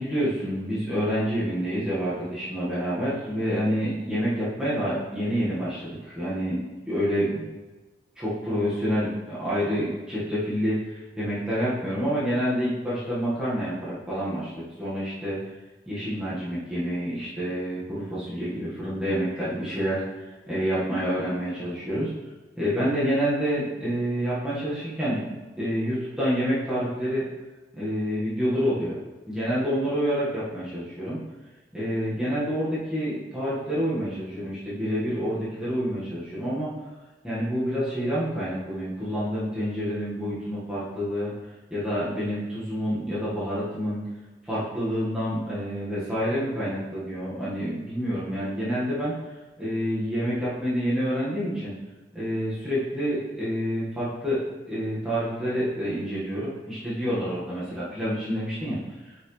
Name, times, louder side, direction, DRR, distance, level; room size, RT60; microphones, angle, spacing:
voice 1, 0.0-6.6 6.9-7.4 8.2-15.4 15.9-20.0 20.5-22.1 22.5-25.3 25.6-27.2 27.7-29.0 29.3-31.2 31.7-36.7 37.2-41.3 41.7-44.0 44.5-49.1 49.6-51.7 52.1-54.4 54.7-59.1, equal, 5° right, -11 dB, 1.7 m, -28 dB
5.9 x 5.8 x 3.3 m, 1.2 s
head